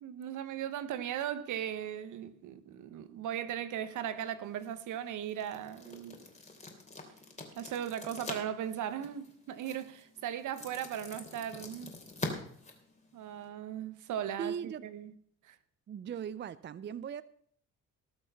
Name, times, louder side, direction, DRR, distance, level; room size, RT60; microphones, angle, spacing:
voice 1, 0.0-6.2 7.5-11.9 13.1-15.1 15.4-15.6, right 10 dB, 80° right, 1.2 m, -38 dB
sound 1, 4.4-13.5, left 3 dB, 25° left, 3.1 m, -45 dB
voice 2, 14.4-14.9 15.9-17.2, right 8 dB, 35° right, 0.5 m, -39 dB
19.0 x 6.3 x 5.7 m
cardioid pair, 90°, 30 cm